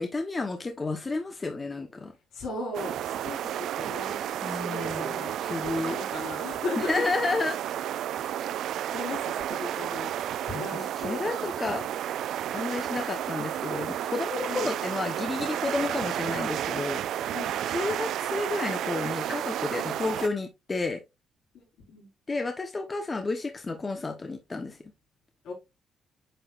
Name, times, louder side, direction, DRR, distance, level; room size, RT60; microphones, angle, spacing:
voice 1, 0.0-2.1 4.4-5.0 5.4-6.0 6.8-7.6 10.5-10.6 11.0-11.9 12.5-17.0 17.7-21.0 22.3-24.8, left 3 dB, 25° left, 1.0 m, -31 dB
voice 2, 2.3-7.0 8.9-10.1 10.5-11.5 14.4-14.7 17.3-17.6 19.7-20.0 21.5-22.1 25.4-25.5, left 2 dB, 80° left, 4.6 m, -37 dB
sound 1, 2.7-20.3, right 11 dB, 75° right, 0.3 m, -32 dB
9.0 x 4.8 x 2.5 m
cardioid pair, 90°, 0 cm